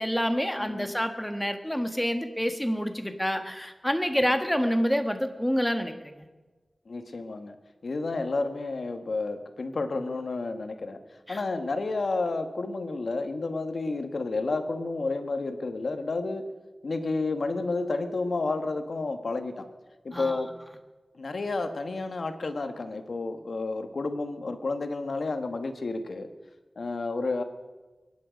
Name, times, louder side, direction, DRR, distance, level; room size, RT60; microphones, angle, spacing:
voice 1, 0.0-6.3 11.3-11.4 20.1-20.4, equal, 5° left, 7 dB, 1.5 m, -28 dB
voice 2, 0.6-0.9 6.9-7.5 7.8-11.0 11.3-16.4 16.8-19.7 20.0-20.6 21.1-26.3 26.8-27.4, left 3 dB, 80° left, 7 dB, 1.3 m, -31 dB
23.0 x 11.0 x 5.1 m, 1.2 s
wide cardioid pair, 75°, 0 cm